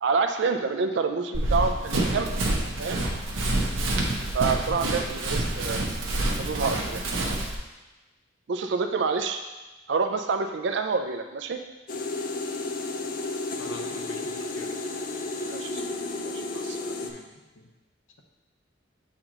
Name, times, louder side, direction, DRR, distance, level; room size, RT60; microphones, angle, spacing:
voice 1, 0.0-2.4 2.8-3.0 4.3-5.8 6.4-7.0 8.5-9.4 9.9-11.6 15.4-16.0 16.2-16.9, right 4 dB, 65° right, 6 dB, 0.4 m, -28 dB
Run, 1.3-7.5, right 1 dB, 90° right, 0.8 m, -27 dB
voice 2, 4.6-5.1 13.6-14.7 17.0-17.2 17.6-17.7, left 1 dB, 80° left, 1 dB, 0.8 m, -43 dB
sound 1, 11.9-17.1, left 2 dB, 45° left, 0.5 m, -32 dB
7.7 x 4.3 x 2.9 m, 1.1 s
head